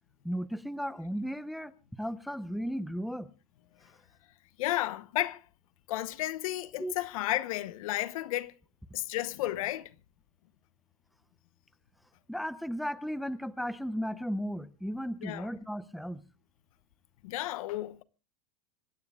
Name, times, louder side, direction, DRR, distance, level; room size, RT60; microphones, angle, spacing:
voice 1, 0.2-1.7 2.0-3.3 6.8-6.9 12.3-16.2, equal, ahead, 0.7 m, -35 dB
voice 2, 4.6-5.4 5.9-8.5 8.9-9.9 15.2-15.5 17.2-18.0, left 15 dB, 75° left, 1.0 m, -32 dB
26.0 x 15.0 x 2.3 m
supercardioid pair, 130°, 18 cm